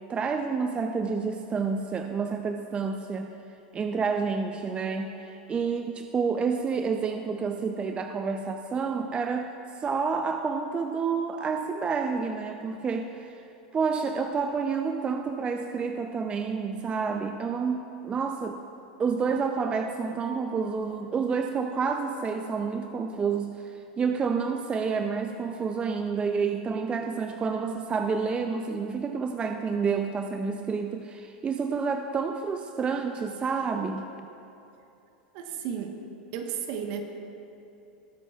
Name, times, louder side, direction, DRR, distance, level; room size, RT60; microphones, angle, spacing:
voice 1, 0.1-3.3 3.7-13.4 13.7-18.6 19.0-34.0, right 5 dB, 20° right, 6 dB, 0.5 m, -29 dB
voice 2, 35.3-36.0 36.3-37.0, right 8 dB, 55° right, 4 dB, 1.2 m, -33 dB
20.0 x 8.0 x 2.4 m, 2.8 s
hypercardioid pair, 105°, 5 cm